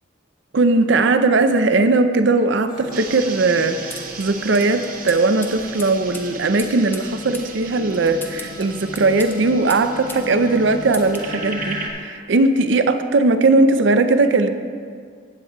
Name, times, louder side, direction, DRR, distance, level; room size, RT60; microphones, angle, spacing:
voice 1, 0.5-14.5, right 3 dB, 65° right, 9 dB, 0.5 m, -18 dB
sound 1, 2.7-11.9, left 1 dB, 45° left, 1.3 m, -38 dB
sound 2, 2.9-11.9, right 4 dB, 45° right, 0.9 m, -36 dB
sound 3, 3.9-10.3 10.5-11.3, left 2 dB, 10° left, 0.5 m, -39 dB
15.0 x 8.7 x 2.3 m, 2.1 s
head